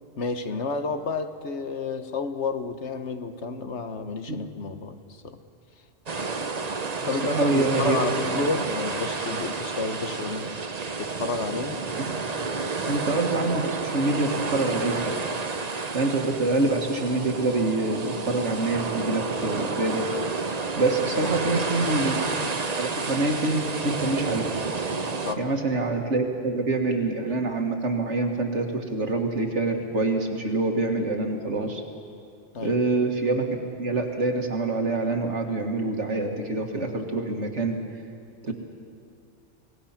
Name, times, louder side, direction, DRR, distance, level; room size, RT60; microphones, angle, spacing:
voice 1, 0.2-5.4 7.0-10.6 11.0-11.8 21.1-21.4 25.2-25.4 32.5-32.8 38.5-38.6, left 4 dB, 65° left, 8 dB, 1.3 m, -30 dB
sound 1, 6.1-25.3, right 4 dB, 35° right, 0.9 m, -30 dB
voice 2, 7.2-8.0 12.8-15.2 15.9-20.1 20.8-22.1 22.7-24.6 25.4-31.8 32.6-37.9 38.4-38.5, right 2 dB, 65° right, 3 dB, 2.1 m, -26 dB
25.5 x 18.5 x 5.9 m, 2.4 s
omnidirectional pair, 1.3 m